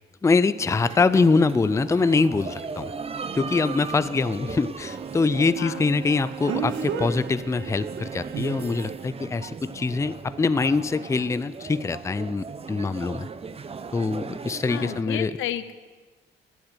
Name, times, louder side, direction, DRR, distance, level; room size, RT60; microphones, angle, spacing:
voice 1, 0.2-2.9 3.3-13.3 13.9-15.4, left 4 dB, 15° left, 15 dB, 0.4 m, -24 dB
sound 1, 0.6-15.0, right 5 dB, 30° right, 0.7 m, -38 dB
Speech, 1.2-1.3 6.5-7.1 8.3-8.6, right 6 dB, 85° right, 1.6 m, -29 dB
Bowed string instrument, 4.8-9.1, right 9 dB, 55° right, 0.9 m, -41 dB
voice 2, 14.7-15.7, left 12 dB, 85° left, 12 dB, 0.9 m, -31 dB
12.0 x 10.0 x 7.9 m, 1.4 s
cardioid pair, 90°, 20 cm